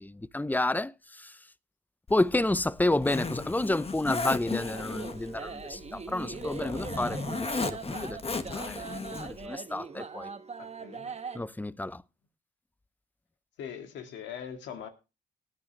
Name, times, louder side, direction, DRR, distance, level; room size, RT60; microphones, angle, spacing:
voice 1, 0.0-1.3 2.1-10.3 11.3-12.0, left 2 dB, 10° left, 0.6 m, -30 dB
Zipper (clothing), 2.1-9.5, left 4 dB, 30° left, 1.5 m, -36 dB
sound 1, 4.6-11.4, right 5 dB, 35° right, 1.2 m, -41 dB
voice 2, 10.6-11.1 13.6-14.9, left 8 dB, 85° left, 2.0 m, -41 dB
18.5 x 9.6 x 3.1 m
supercardioid pair, 60°, 19 cm